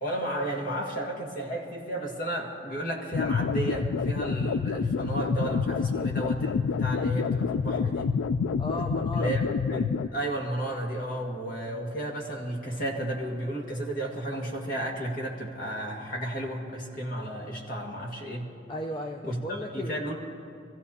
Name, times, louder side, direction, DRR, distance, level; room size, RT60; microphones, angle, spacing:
voice 1, 0.0-8.1 9.1-18.5 19.2-20.2, right 1 dB, 45° left, -1 dB, 1.9 m, -33 dB
sound 1, 3.1-10.1, left 5 dB, 85° left, 0.3 m, -28 dB
voice 2, 8.6-9.3 18.7-20.0, left 1 dB, 25° left, 2 dB, 0.5 m, -35 dB
24.5 x 15.0 x 2.8 m, 2.5 s
head